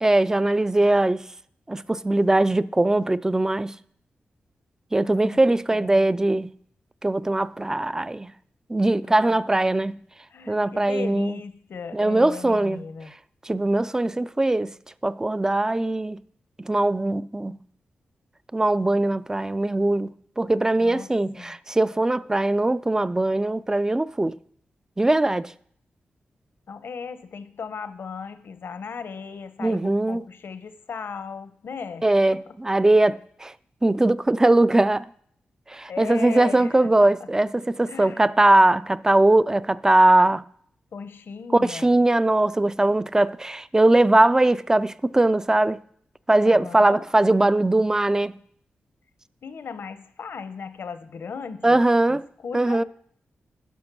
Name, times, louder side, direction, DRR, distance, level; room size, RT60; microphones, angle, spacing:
voice 1, 0.0-1.2 1.7-3.7 4.9-6.5 7.0-8.3 8.7-10.0 10.5-11.3 11.9-12.8 13.5-14.7 15.0-16.2 16.6-17.6 18.5-20.1 20.4-24.4 25.0-25.5 29.6-30.2 32.0-33.5 33.8-35.1 35.7-40.4 41.5-45.8 46.3-48.3 51.6-52.3 52.5-52.8, right 2 dB, 15° right, 0.3 m, -20 dB
voice 2, 5.0-6.1 9.0-9.4 10.3-13.1 20.8-21.5 26.7-32.0 32.3-32.5 35.9-37.3 37.9-38.3 40.9-42.0 46.4-47.1 49.4-51.8 52.1-52.8, left 5 dB, 70° left, 0.8 m, -37 dB
11.5 x 5.2 x 6.0 m
cardioid pair, 85°, 4 cm